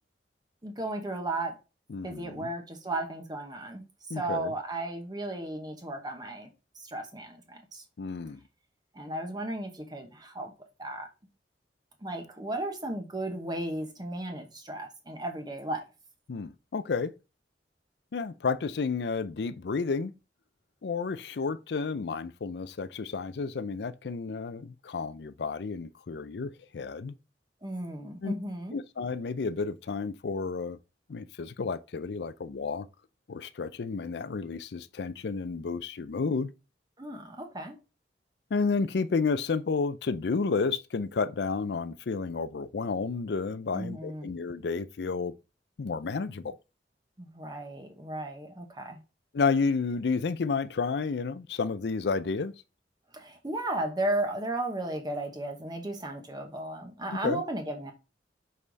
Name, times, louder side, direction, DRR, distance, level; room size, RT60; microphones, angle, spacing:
voice 1, 0.6-1.6 2.0-3.9 4.1-6.5 6.8-7.8 8.9-10.5 10.8-11.1 12.0-15.8 27.6-28.8 37.0-37.8 43.7-44.3 47.2-49.0 53.1-57.9, right 1 dB, 25° right, 1.0 m, -35 dB
voice 2, 1.9-2.5 4.1-4.5 8.0-8.4 16.3-17.1 18.1-20.1 20.8-27.1 28.2-28.3 28.7-30.8 31.1-32.9 33.3-36.5 38.5-45.3 45.8-46.6 49.3-52.5 57.2-57.4, left 4 dB, 70° left, 0.5 m, -31 dB
5.4 x 4.8 x 3.9 m
head